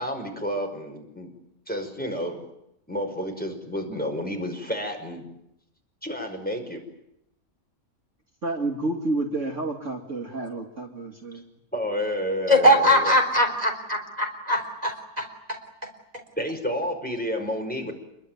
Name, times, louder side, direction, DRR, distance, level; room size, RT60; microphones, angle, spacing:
voice 1, 0.0-1.3 1.7-2.5 2.9-5.3 6.0-6.8 11.7-13.2 16.4-17.9, equal, 5° left, 3 dB, 5.4 m, -30 dB
voice 2, 8.4-11.5, right 2 dB, 50° right, 2 dB, 2.7 m, -30 dB
voice 3, 12.5-15.3, equal, 25° right, 3 dB, 3.8 m, -21 dB
28.0 x 22.5 x 9.3 m, 0.83 s
omnidirectional pair, 1.6 m